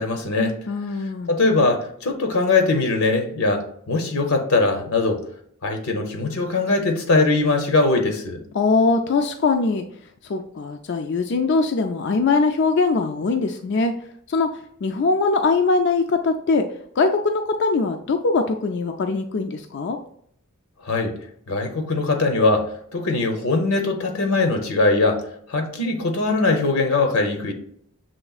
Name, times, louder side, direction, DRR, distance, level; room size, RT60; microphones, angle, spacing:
voice 1, 0.0-0.6 1.3-5.2 5.6-8.4 20.8-21.1 21.5-25.2 25.5-27.5, left 3 dB, 75° left, 5 dB, 0.8 m, -21 dB
voice 2, 0.7-1.3 8.5-9.8 10.2-13.9 14.3-16.7 17.0-20.0, left 3 dB, 55° left, 5 dB, 0.4 m, -21 dB
6.9 x 3.1 x 2.4 m, 0.67 s
head